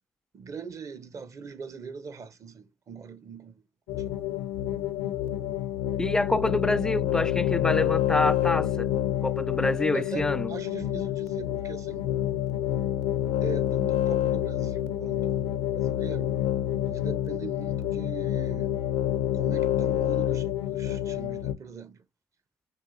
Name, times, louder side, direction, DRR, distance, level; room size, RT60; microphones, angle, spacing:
voice 1, 0.3-3.5 3.9-4.0 9.9-12.1 13.4-16.4 16.8-18.7 19.3-22.0, right 5 dB, 45° right, 0.8 m, -41 dB
sound 1, 3.9-21.5, left 12 dB, 80° left, 0.5 m, -28 dB
voice 2, 6.0-8.9 9.2-10.5, left 2 dB, 10° left, 0.3 m, -27 dB
4.7 x 3.1 x 2.5 m
hypercardioid pair, 55°, 7 cm